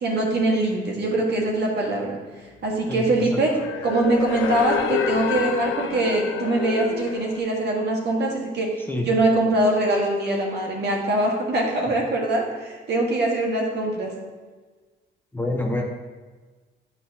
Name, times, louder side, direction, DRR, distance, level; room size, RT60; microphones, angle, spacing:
voice 1, 0.0-2.2 2.6-3.5 3.8-8.7 9.1-14.1, right 2 dB, 55° right, -1 dB, 1.7 m, -23 dB
voice 2, 2.9-3.4 8.9-9.1 11.9-12.0 15.3-15.8, left 1 dB, 10° left, 0 dB, 0.9 m, -27 dB
sound 1, 3.1-7.4, left 7 dB, 85° left, 0.6 m, -28 dB
9.0 x 5.7 x 2.8 m, 1.4 s
cardioid pair, 90°, 20 cm